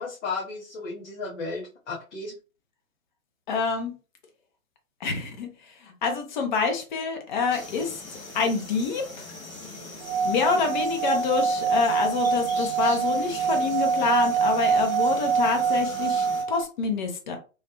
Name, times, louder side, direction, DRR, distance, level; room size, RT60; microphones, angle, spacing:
voice 1, 0.0-2.3, left 3 dB, 60° left, -4 dB, 1.1 m, -34 dB
voice 2, 3.5-3.9 5.0-8.0 8.3-9.0 10.2-17.4, left 5 dB, 35° left, 5 dB, 0.7 m, -27 dB
sound 1, 7.5-16.4, left 2 dB, 85° left, 1.5 m, -41 dB
Singing / Glass, 10.0-16.6, right 5 dB, 60° right, 0.6 m, -25 dB
3.2 x 2.2 x 2.8 m, 0.33 s
figure-of-eight pair, 125°, 40 cm